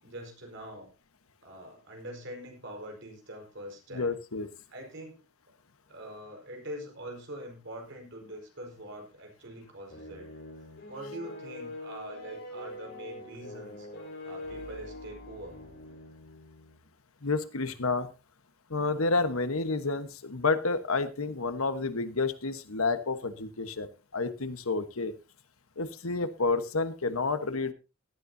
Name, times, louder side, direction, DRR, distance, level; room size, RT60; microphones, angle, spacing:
voice 1, 0.0-0.9 1.4-4.1 4.7-5.2 5.9-10.3 10.9-13.9 14.2-15.6, right 1 dB, 60° right, 3 dB, 4.8 m, -44 dB
voice 2, 3.9-4.5 17.2-18.1 18.7-25.1 25.8-27.7, left 3 dB, 90° left, 11 dB, 1.3 m, -30 dB
sound 1, 9.9-16.8, left 1 dB, 55° left, 5.1 m, -44 dB
17.5 x 12.5 x 2.8 m, 0.29 s
head